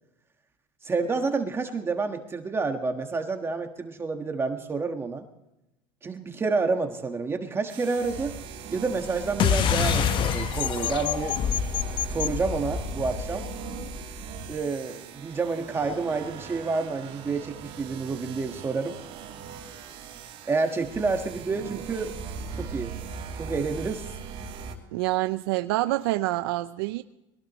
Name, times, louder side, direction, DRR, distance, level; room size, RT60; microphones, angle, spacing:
voice 1, 0.8-5.2 6.0-8.3 8.7-11.4 12.1-13.4 14.5-18.9 20.5-22.1 22.5-22.9 23.4-24.1, right 4 dB, 20° right, 5 dB, 1.5 m, -29 dB
sound 1, 7.7-24.8, right 5 dB, 50° right, 3.0 m, -39 dB
sound 2, 9.4-14.3, left 8 dB, 40° left, 1.1 m, -27 dB
voice 2, 24.9-27.0, right 18 dB, 85° right, 12 dB, 0.5 m, -26 dB
22.5 x 17.5 x 3.1 m, 0.93 s
supercardioid pair, 120°, 12 cm